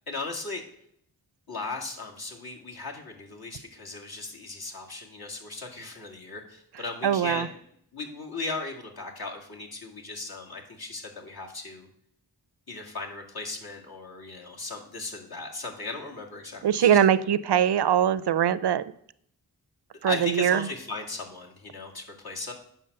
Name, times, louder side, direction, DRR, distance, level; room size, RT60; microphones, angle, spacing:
voice 1, 0.1-0.6 1.5-7.6 7.9-11.9 12.7-17.1 20.0-22.5, left 3 dB, 60° left, -1 dB, 2.2 m, -37 dB
voice 2, 7.0-7.5 16.6-18.9 20.0-20.6, right 9 dB, 75° right, 17 dB, 0.5 m, -22 dB
9.0 x 6.0 x 6.7 m, 0.68 s
wide cardioid pair, 85°, 41 cm